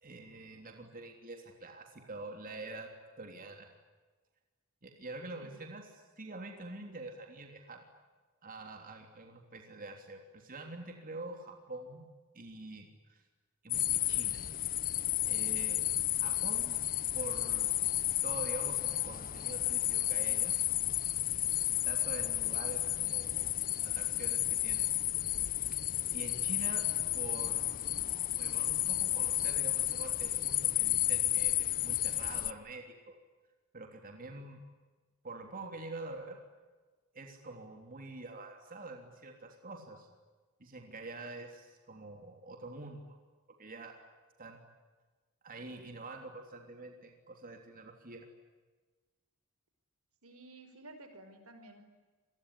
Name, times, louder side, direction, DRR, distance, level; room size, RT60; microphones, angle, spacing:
voice 1, 0.0-3.7 4.8-7.8 8.4-12.1 12.3-13.2 13.6-14.5 15.3-16.9 17.1-17.7 18.2-20.5 21.8-23.6 23.8-24.9 26.1-26.9 27.1-27.7 28.4-33.2 33.7-34.6 35.2-36.4 37.1-40.1 40.6-43.2 43.6-43.9 44.4-44.6 45.4-48.3, right 2 dB, 40° right, 3 dB, 3.3 m, -46 dB
voice 2, 5.3-5.6 21.2-21.7 50.2-51.8, right 2 dB, 80° right, 9 dB, 5.0 m, -53 dB
sound 1, 13.7-32.5, left 13 dB, 40° left, 0.8 m, -32 dB
27.0 x 21.5 x 9.9 m, 1.3 s
head